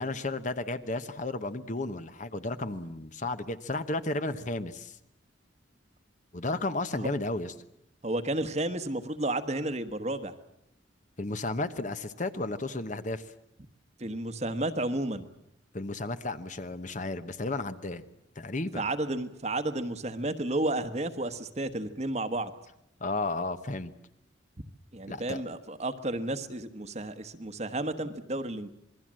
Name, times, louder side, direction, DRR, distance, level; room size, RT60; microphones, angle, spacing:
voice 1, 0.0-5.0 6.3-7.5 11.2-13.2 15.7-18.0 18.4-18.8 23.0-23.9 25.1-25.4, left 2 dB, 40° left, 10 dB, 1.0 m, -33 dB
voice 2, 8.0-10.3 14.0-15.3 18.7-22.5 24.9-28.7, right 1 dB, 35° right, 9 dB, 1.3 m, -32 dB
27.0 x 20.5 x 7.6 m, 0.79 s
head